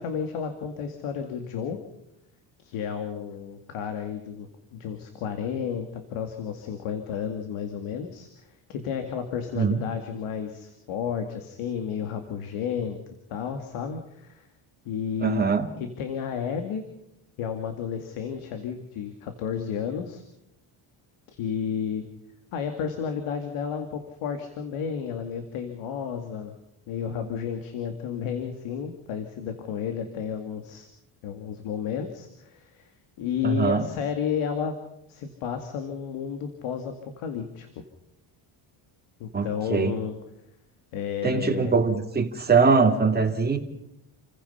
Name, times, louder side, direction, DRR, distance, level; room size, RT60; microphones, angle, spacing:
voice 1, 0.0-1.8 2.6-13.0 13.3-14.5 14.8-15.4 15.8-16.8 17.4-20.2 21.3-22.0 22.5-26.5 26.9-30.9 31.2-32.9 33.2-34.8 35.1-37.7 39.2-40.1 40.9-41.7, left 7 dB, 85° left, 6 dB, 2.4 m, -32 dB
voice 2, 15.2-15.6 33.4-33.9 39.3-39.9 41.2-43.6, right 5 dB, 20° right, 3 dB, 2.5 m, -22 dB
29.0 x 16.0 x 5.7 m, 0.81 s
cardioid pair, 115°, 49 cm